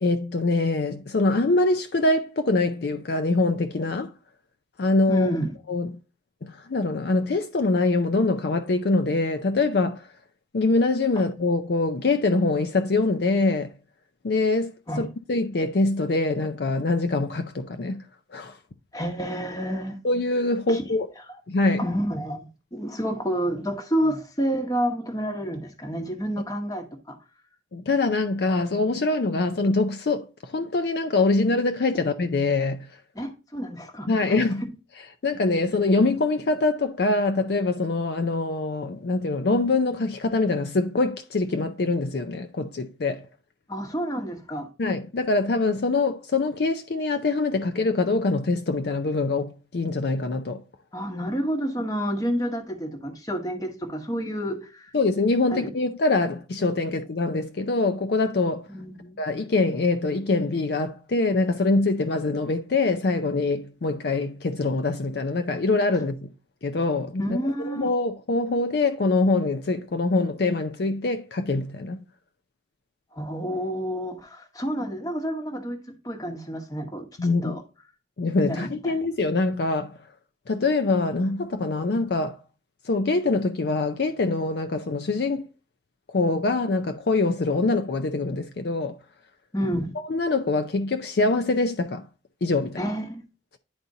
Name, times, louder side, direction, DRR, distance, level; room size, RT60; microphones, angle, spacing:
voice 1, 0.0-4.1 4.8-5.3 5.7-6.0 6.4-10.1 10.5-13.7 14.2-18.0 18.3-18.6 20.0-21.1 21.5-21.9 27.7-32.9 34.1-34.6 35.2-43.3 44.8-50.6 54.9-58.7 59.2-66.3 66.6-72.0 77.2-77.6 78.2-80.0 80.5-82.4 82.9-85.5 86.1-89.0 90.0-92.0 92.4-92.8, left 3 dB, 55° left, 0.5 m, -24 dB
voice 2, 5.1-5.5 11.2-11.3 14.9-15.1 18.9-20.0 20.7-20.8 21.8-27.2 33.1-34.4 43.7-44.7 50.9-54.9 55.5-55.7 58.7-59.2 67.2-67.9 73.1-77.1 77.4-77.6 78.5-78.9 89.5-89.9 92.8-93.2, equal, 20° left, 1.1 m, -29 dB
10.5 x 4.2 x 2.6 m
head